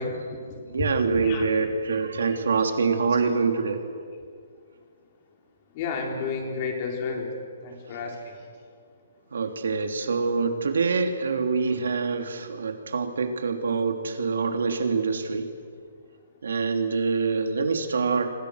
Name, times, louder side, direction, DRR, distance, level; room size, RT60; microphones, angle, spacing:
voice 1, 0.0-0.9 1.1-1.5 3.0-3.2 5.7-7.3 7.6-8.4, left 4 dB, 30° left, 1 dB, 3.9 m, -32 dB
voice 2, 0.7-3.8 9.3-15.5 16.4-18.3, right 4 dB, 85° right, 5 dB, 3.1 m, -25 dB
28.0 x 25.5 x 6.6 m, 2.1 s
hypercardioid pair, 175°, 0 cm